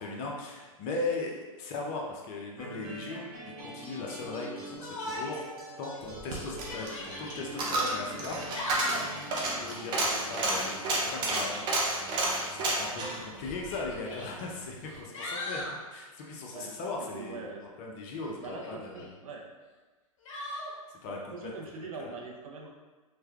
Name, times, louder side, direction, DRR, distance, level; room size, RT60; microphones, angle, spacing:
voice 1, 0.0-5.4 5.8-8.4 8.9-11.5 12.5-15.6 15.9-17.4 17.8-19.2 20.6-21.5 22.0-22.1, left 3 dB, 35° left, -1 dB, 0.5 m, -38 dB
sound 1, 2.6-9.6, right 1 dB, 90° right, 0.9 m, -44 dB
Yell, 4.8-5.5 5.9-6.0 6.5-7.4 8.3-9.1 10.9-11.3 12.5-12.6 13.4-14.3 14.8-15.8 18.4-19.1 20.3-20.7, left 2 dB, 60° left, 0.8 m, -39 dB
Coin (dropping), 6.1-14.5 14.9-15.0, right 2 dB, 25° right, 0.5 m, -31 dB
voice 2, 17.1-17.6 18.4-19.4 21.1-22.7, right 4 dB, 70° right, 0 dB, 0.6 m, -43 dB
3.2 x 2.1 x 2.2 m, 1.3 s
hypercardioid pair, 130°, 19 cm